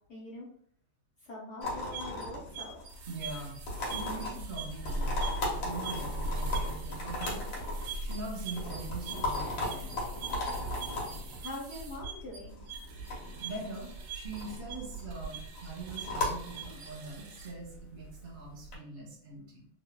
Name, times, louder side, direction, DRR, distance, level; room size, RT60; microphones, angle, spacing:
voice 1, 0.1-0.5 1.2-2.8 11.4-12.6, left 1 dB, 65° left, -5 dB, 0.7 m, -43 dB
sound 1, 1.6-18.8, left 1 dB, 85° left, 1.6 m, -36 dB
sound 2, 1.6-17.5, right 7 dB, 70° right, 1.0 m, -45 dB
voice 2, 3.1-3.6 3.9-5.1 5.5-7.4 8.0-10.1 13.4-19.7, right 2 dB, 45° right, -4 dB, 1.2 m, -42 dB
3.6 x 2.1 x 2.2 m, 0.65 s
omnidirectional pair, 2.0 m